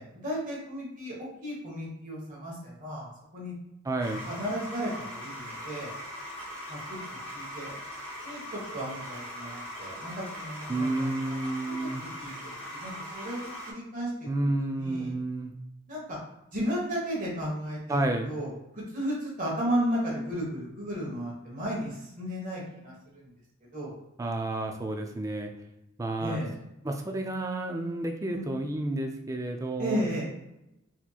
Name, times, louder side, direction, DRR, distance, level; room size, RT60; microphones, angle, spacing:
voice 1, 0.0-3.5 4.2-5.9 6.7-7.0 7.3-7.7 8.2-11.4 12.2-14.1 14.4-15.1 15.9-16.2 16.5-18.0 18.2-23.3 23.7-23.9 26.2-26.5 28.3-28.5 29.8-30.3, equal, 40° right, -4 dB, 1.2 m, -34 dB
voice 2, 3.8-4.2 10.7-12.0 14.3-15.5 17.9-18.3 24.2-25.5 26.0-26.4 26.8-30.0, right 2 dB, 15° right, 4 dB, 0.3 m, -30 dB
vcr rewind, 4.0-13.7, equal, 5° left, 0.8 m, -40 dB
4.2 x 2.8 x 2.3 m, 0.89 s
head